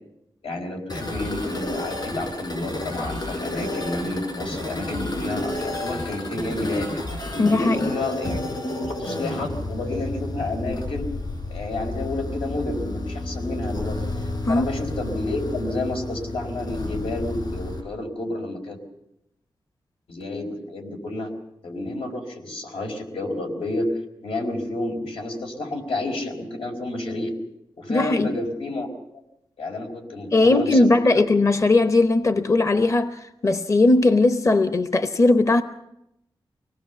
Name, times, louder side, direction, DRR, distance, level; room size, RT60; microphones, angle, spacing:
voice 1, 0.4-6.9 7.3-11.1 11.5-14.0 14.5-18.8 20.1-21.3 21.6-27.3 27.8-28.9 29.1-29.2 29.6-31.2, left 2 dB, 90° left, 4.6 m, -30 dB
sound 1, 0.9-17.8, left 2 dB, 50° left, 5.4 m, -31 dB
voice 2, 7.4-7.9 14.4-14.7 27.9-28.3 30.3-35.6, left 2 dB, 35° left, 0.9 m, -19 dB
24.5 x 18.5 x 7.0 m
wide cardioid pair, 140°, 9 cm